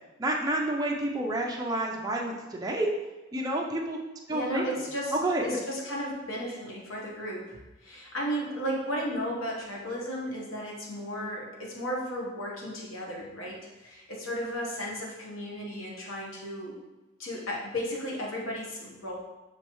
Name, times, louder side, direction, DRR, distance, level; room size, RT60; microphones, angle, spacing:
voice 1, 0.2-2.9 3.3-4.0 4.3-4.7 5.1-5.6, right 1 dB, 20° right, 0 dB, 0.5 m, -29 dB
voice 2, 4.3-16.8 17.2-19.1, equal, 80° left, -3 dB, 1.1 m, -34 dB
5.8 x 3.1 x 3.0 m, 1.1 s
head